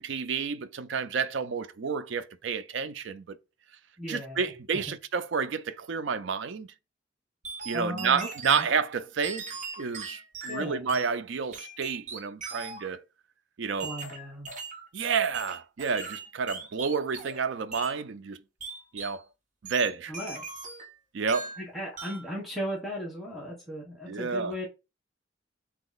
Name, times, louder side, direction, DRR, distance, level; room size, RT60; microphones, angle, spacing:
voice 1, 0.0-3.4 4.1-6.7 7.7-13.0 13.6-13.9 14.9-18.4 18.9-19.2 19.6-20.1 21.1-21.5 24.1-24.5, right 5 dB, 70° right, 0.5 m, -30 dB
voice 2, 4.0-4.4 4.7-4.8 7.7-8.7 10.5-11.0 13.8-14.5 20.1-20.5 21.6-24.7, equal, ahead, 1.3 m, -36 dB
sound 1, 7.4-8.7 9.2-11.1 11.5-12.9 13.8-14.9 15.3-17.4 17.7-18.0 18.6-19.2 19.7-21.0 21.3-21.7 22.0-22.3, right 4 dB, 40° right, 1.0 m, -40 dB
3.9 x 2.8 x 3.9 m
head